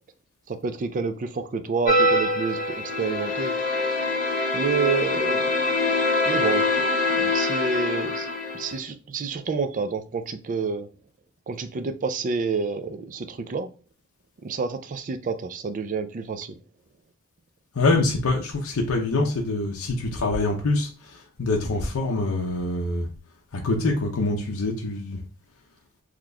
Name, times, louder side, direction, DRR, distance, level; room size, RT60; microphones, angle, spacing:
voice 1, 0.5-3.5 4.5-5.5 6.3-6.8 7.1-8.3 8.5-10.9 11.5-13.7 14.4-16.6, right 4 dB, 35° right, 0.4 m, -28 dB
sound 1, 1.9-8.8, left 2 dB, 40° left, 1.0 m, -24 dB
voice 2, 17.7-23.1 23.5-25.2, left 2 dB, 75° left, 0.6 m, -25 dB
3.9 x 3.0 x 2.3 m
head